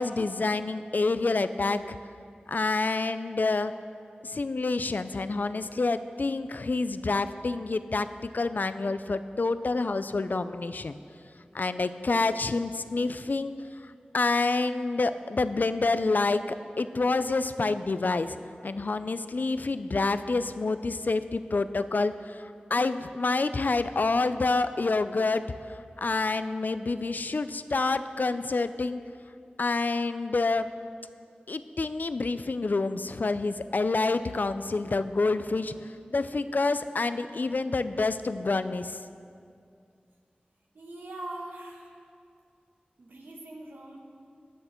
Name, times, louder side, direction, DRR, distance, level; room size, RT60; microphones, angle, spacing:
voice 1, 0.0-1.8 2.5-3.7 4.2-10.9 11.5-13.5 14.1-18.4 18.6-25.5 26.0-29.0 29.6-30.7 31.5-39.0, left 3 dB, 60° left, 12 dB, 0.4 m, -28 dB
voice 2, 40.7-41.9 43.0-44.0, right 1 dB, 85° right, -1 dB, 1.7 m, -41 dB
18.0 x 6.5 x 4.4 m, 2.3 s
cardioid pair, 45°, 3 cm